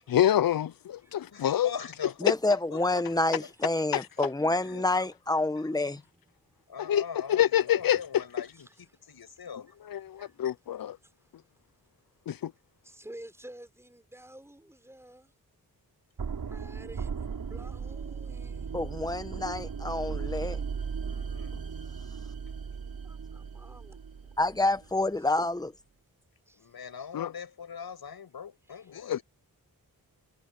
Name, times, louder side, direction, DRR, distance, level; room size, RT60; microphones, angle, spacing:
voice 1, 0.1-1.7 6.8-8.2 9.9-11.0 12.3-12.5 27.1-27.3 29.1-29.2, left 11 dB, 70° left, 0.6 m, -26 dB
voice 2, 1.2-3.5 3.9-4.0 4.6-5.1 5.6-5.7 6.7-9.7 20.9-21.5 23.4-23.5 26.5-29.2, left 7 dB, 85° left, 7.7 m, -42 dB
voice 3, 2.2-6.0 18.7-20.6 24.4-25.7, left 2 dB, 10° left, 1.1 m, -28 dB
voice 4, 4.2-4.5 5.6-5.8 6.4-7.0 8.6-8.9 10.1-10.3 11.0-11.1 12.8-15.3 16.3-18.7 23.0-24.0 25.1-25.3 26.5-26.7 28.7-28.9, right 1 dB, 5° right, 6.3 m, -51 dB
sound 1, 16.2-25.0, right 6 dB, 75° right, 7.1 m, -37 dB
wide cardioid pair, 145°, 36 cm